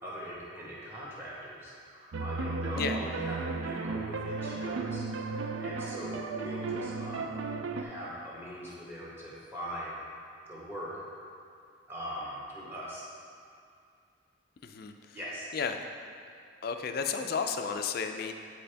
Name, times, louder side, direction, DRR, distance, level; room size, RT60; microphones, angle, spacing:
voice 1, 0.0-7.4 7.8-10.0 10.5-11.0 11.9-13.1 15.1-15.4, equal, 10° right, -7 dB, 1.4 m, -41 dB
sound 1, 2.1-7.8, right 3 dB, 70° right, 0.4 m, -34 dB
voice 2, 14.6-14.9 15.5-15.8 16.6-18.3, left 6 dB, 45° left, 6 dB, 0.4 m, -32 dB
10.0 x 4.3 x 3.4 m, 2.4 s
head